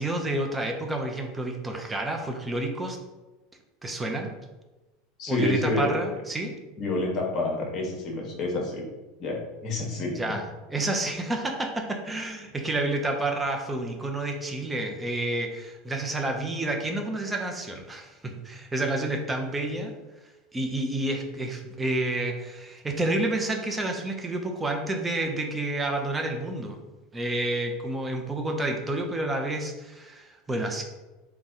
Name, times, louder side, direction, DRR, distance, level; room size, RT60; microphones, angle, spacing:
voice 1, 0.0-3.0 3.8-4.3 5.3-6.5 10.1-10.4 10.7-19.9 20.5-26.8 27.1-30.8, right 2 dB, 15° right, 3 dB, 0.6 m, -29 dB
voice 2, 5.2-6.0 6.8-8.8 9.2-10.2, left 2 dB, 40° left, 0 dB, 1.2 m, -28 dB
3.9 x 2.3 x 3.7 m, 1.1 s
hypercardioid pair, 95°, 0 cm